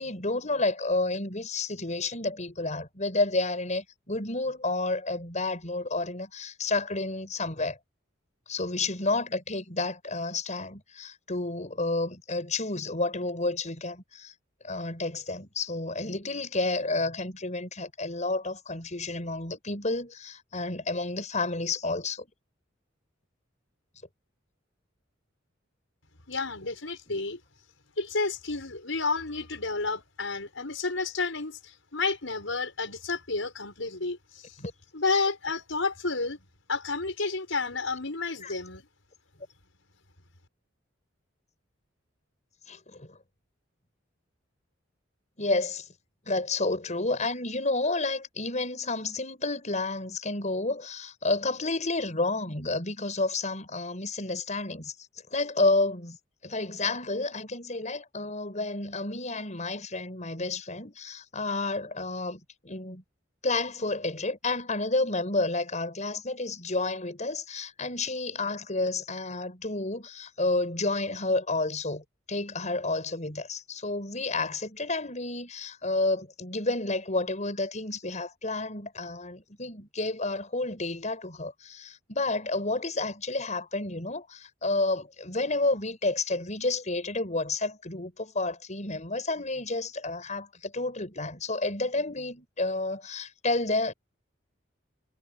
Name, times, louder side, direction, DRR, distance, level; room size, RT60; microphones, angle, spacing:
voice 1, 0.0-7.8 8.5-14.3 14.6-22.3 27.1-27.2 34.6-34.7 38.4-38.5 42.7-43.2 45.4-45.9 46.3-54.9 55.3-56.2 56.4-63.0 63.4-93.9, left 2 dB, 40° left, 6.3 m, -30 dB
voice 2, 26.3-27.4 28.0-34.6 34.9-36.4 36.7-38.8, left 3 dB, 80° left, 5.8 m, -31 dB
head